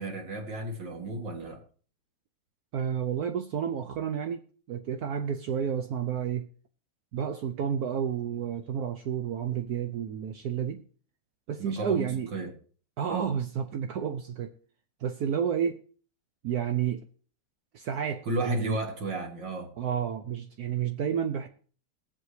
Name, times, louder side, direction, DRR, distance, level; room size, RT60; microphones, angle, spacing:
voice 1, 0.0-1.6 11.6-12.5 13.1-13.3 18.2-19.7, right 1 dB, 55° right, 2.3 m, -33 dB
voice 2, 2.7-4.4 4.7-6.5 7.1-10.8 11.5-12.3 13.0-14.5 15.0-15.8 16.4-17.0 17.7-18.8 19.8-21.5, right 8 dB, 85° right, 0.8 m, -30 dB
20.5 x 7.7 x 3.2 m
omnidirectional pair, 2.4 m